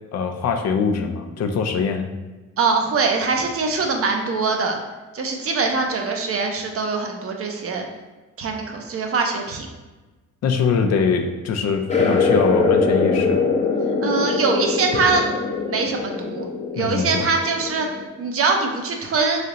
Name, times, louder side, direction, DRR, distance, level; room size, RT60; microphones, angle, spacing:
voice 1, 0.1-2.1 10.4-13.4 16.8-17.3, left 5 dB, 60° left, 5 dB, 0.5 m, -23 dB
voice 2, 2.6-4.8 5.1-7.8 8.4-9.7 14.0-15.3 15.7-16.5 16.7-19.5, right 4 dB, 50° right, 3 dB, 0.7 m, -23 dB
sound 1, 11.9-18.0, left 4 dB, 20° left, 0.7 m, -22 dB
3.3 x 2.8 x 3.8 m, 1.2 s
cardioid pair, 90°, 30 cm